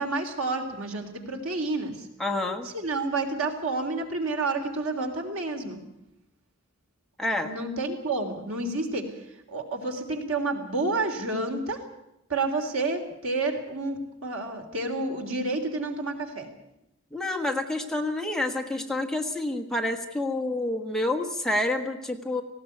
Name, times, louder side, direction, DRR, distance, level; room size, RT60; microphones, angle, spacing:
voice 1, 0.0-2.1 2.6-5.8 7.4-9.1 9.5-11.8 12.3-16.5, right 3 dB, 85° right, 4 dB, 3.6 m, -29 dB
voice 2, 2.2-2.7 7.2-7.5 17.1-22.4, left 1 dB, 5° left, 3 dB, 1.5 m, -28 dB
18.5 x 17.0 x 9.4 m, 0.85 s
head